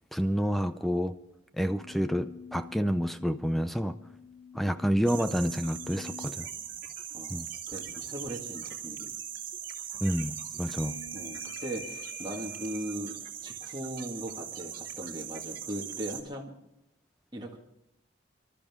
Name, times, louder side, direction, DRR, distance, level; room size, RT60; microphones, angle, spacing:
voice 1, 0.1-1.1 1.6-4.0 4.6-6.4 7.3-7.5 10.0-11.0, equal, ahead, 10 dB, 0.5 m, -29 dB
sound 1, 1.7-6.5 10.4-13.0, left 4 dB, 35° left, 0.8 m, -47 dB
sound 2, 5.1-16.2, right 9 dB, 50° right, 2.4 m, -40 dB
voice 2, 7.7-9.1 10.7-10.8 11.1-13.2 13.4-16.5 17.3-17.6, right 1 dB, 25° right, -2 dB, 1.9 m, -39 dB
25.5 x 12.5 x 3.6 m, 0.83 s
head